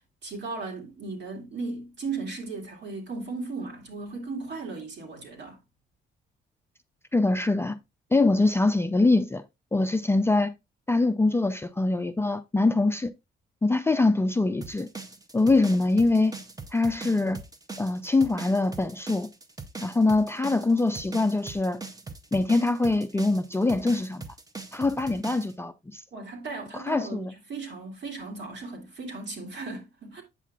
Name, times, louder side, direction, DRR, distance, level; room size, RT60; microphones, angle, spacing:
voice 1, 0.0-5.6 26.1-30.2, right 3 dB, 60° right, 2.2 m, -36 dB
voice 2, 7.1-7.8 8.1-9.4 9.7-10.5 10.9-13.1 13.6-14.9 15.3-16.3 16.7-17.4 17.8-19.3 19.8-21.8 22.3-24.2 24.7-26.0 26.8-27.3, left 2 dB, 10° left, 0.4 m, -23 dB
sound 1, 14.6-25.5, right 4 dB, 20° right, 0.7 m, -40 dB
8.2 x 5.7 x 2.4 m
cardioid pair, 90°, 20 cm